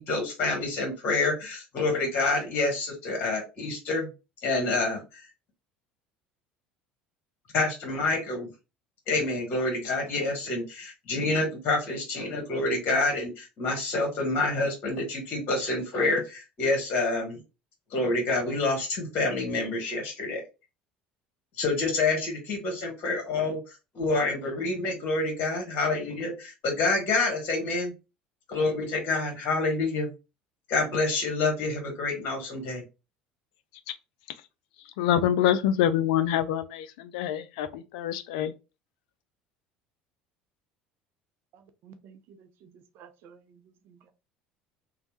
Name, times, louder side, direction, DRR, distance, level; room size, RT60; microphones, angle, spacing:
voice 1, 0.0-4.1 4.4-5.2 7.5-8.5 9.1-17.4 17.9-20.4 21.6-23.6 23.9-27.9 28.5-30.1 30.7-32.8, left 3 dB, 50° left, 1.3 m, -27 dB
voice 2, 35.0-38.5, left 10 dB, 70° left, 0.4 m, -26 dB
voice 3, 41.8-42.7 43.0-43.4, right 7 dB, 55° right, 0.5 m, -51 dB
3.1 x 2.1 x 2.9 m
hypercardioid pair, 65°, 4 cm